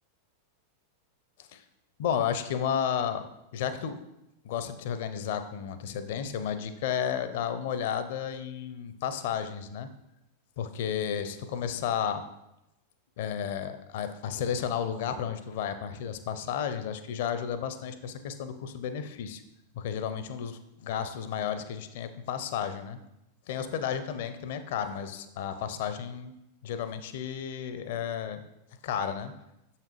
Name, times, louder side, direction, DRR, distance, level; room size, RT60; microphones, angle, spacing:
voice 1, 2.0-4.0 4.4-9.9 10.6-12.2 13.2-19.4 19.7-23.0 23.5-26.3 26.6-28.4 28.8-29.3, left 8 dB, 55° left, 10 dB, 0.5 m, -32 dB
6.7 x 5.7 x 3.1 m, 0.87 s
figure-of-eight pair, 90°, 0 cm